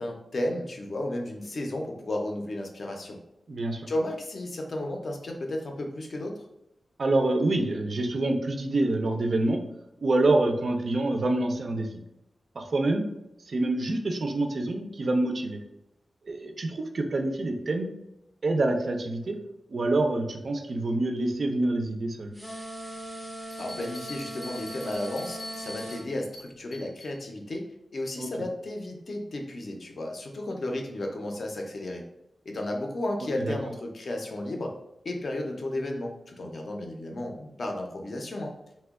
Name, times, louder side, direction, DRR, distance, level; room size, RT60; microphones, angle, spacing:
voice 1, 0.0-3.2 3.9-6.5 23.6-27.6 27.9-32.0 32.4-34.7 35.0-38.5, left 1 dB, 45° left, 2 dB, 0.4 m, -33 dB
voice 2, 3.5-3.9 7.0-9.6 10.0-12.0 12.6-13.0 13.5-15.6 16.3-17.9 18.4-19.3 19.7-22.3 28.2-28.3 33.4-33.5, right 2 dB, 45° right, 4 dB, 0.3 m, -26 dB
sound 1, 22.3-26.0, right 1 dB, ahead, 0.6 m, -39 dB
Bell, 23.5-27.2, left 1 dB, 90° left, 0.8 m, -45 dB
2.8 x 2.1 x 3.4 m, 0.84 s
wide cardioid pair, 175°, 0 cm